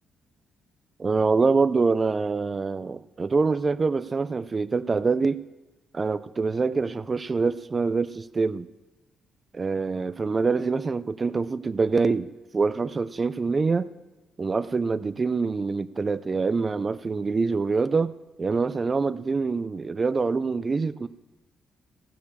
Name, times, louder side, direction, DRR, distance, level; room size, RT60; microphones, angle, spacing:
voice 1, 1.0-5.4 5.9-8.7 9.5-13.9 14.4-18.1 18.4-21.1, right 4 dB, 30° right, 0.5 m, -25 dB
15.5 x 6.7 x 7.0 m
cardioid pair, 90°, 0 cm